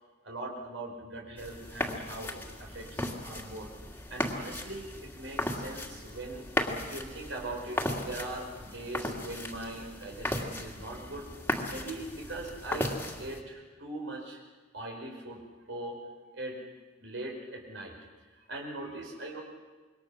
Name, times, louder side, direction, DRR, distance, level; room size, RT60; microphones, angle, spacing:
voice 1, 0.2-3.7 4.1-6.5 6.9-11.3 11.7-14.4 14.7-15.4 15.7-16.0 16.3-16.6 17.0-17.9 18.3-19.4, right 2 dB, 80° right, 0 dB, 5.1 m, -41 dB
sound 1, 1.4-13.4, left 1 dB, 10° left, 2.2 m, -36 dB
26.5 x 22.5 x 6.3 m, 1.3 s
head